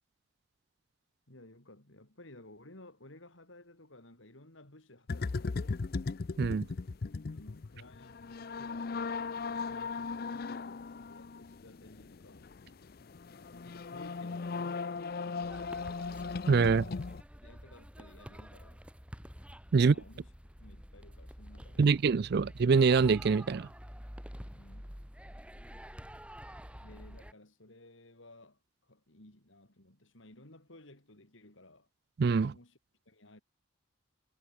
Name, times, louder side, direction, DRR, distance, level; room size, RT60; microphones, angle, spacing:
voice 1, 1.3-5.7 7.3-12.5 13.5-16.0 17.4-18.8 19.8-20.3 20.6-22.0 24.5-25.0 26.8-31.9 32.5-32.8 33.1-33.4, left 1 dB, 70° left, 3.8 m, -56 dB
sound 1, 5.1-17.2, left 4 dB, 45° left, 0.5 m, -38 dB
sound 2, 15.4-27.3, equal, 5° right, 6.0 m, -48 dB
voice 2, 16.5-16.8 19.7-19.9 21.8-23.7 32.2-32.5, right 5 dB, 50° right, 0.4 m, -24 dB
head